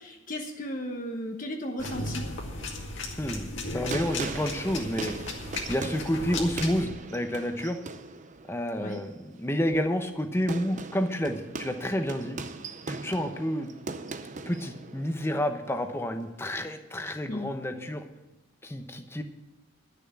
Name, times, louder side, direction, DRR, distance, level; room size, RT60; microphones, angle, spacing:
voice 1, 0.0-2.2 8.8-9.0 17.3-17.5, left 1 dB, 40° left, 3 dB, 1.1 m, -35 dB
sound 1, 1.8-6.8, left 2 dB, 65° left, 2.1 m, -36 dB
sound 2, 1.8-16.4, right 3 dB, 40° right, 0.6 m, -41 dB
voice 2, 3.2-5.1 5.7-7.8 8.5-12.4 12.9-13.7 14.5-18.0 18.6-19.2, equal, 10° left, 7 dB, 0.9 m, -30 dB
12.0 x 6.9 x 8.7 m, 1.0 s
head